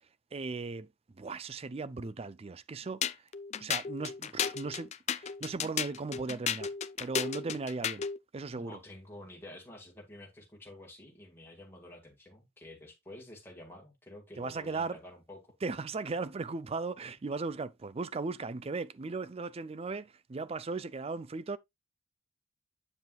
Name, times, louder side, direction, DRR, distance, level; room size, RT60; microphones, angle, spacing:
voice 1, 0.3-0.9 1.2-3.0 3.6-6.7 7.0-8.0 8.3-8.8 14.4-15.0 15.6-21.6, right 3 dB, 30° right, 0.4 m, -37 dB
sound 1, 3.0-8.2, left 8 dB, 35° left, 0.4 m, -34 dB
voice 2, 8.5-15.5, left 1 dB, 10° left, 1.9 m, -50 dB
7.8 x 7.0 x 2.3 m
head